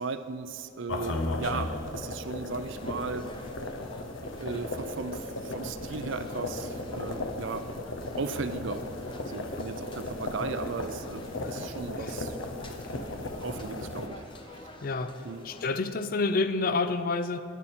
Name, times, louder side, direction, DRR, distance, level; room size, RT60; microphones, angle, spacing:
voice 1, 0.0-3.3 4.4-7.7 8.2-8.8 9.3-12.4 13.4-14.6 15.2-15.5, right 4 dB, 70° right, 10 dB, 0.5 m, -36 dB
sound 1, 0.9-14.1, left 2 dB, 75° left, 1.0 m, -36 dB
sound 2, 2.5-15.7, left 1 dB, 25° left, 0.8 m, -49 dB
voice 2, 11.4-12.1 14.8-15.1 15.4-17.4, left 3 dB, 45° left, 11 dB, 0.4 m, -29 dB
20.0 x 7.2 x 4.3 m, 2.5 s
head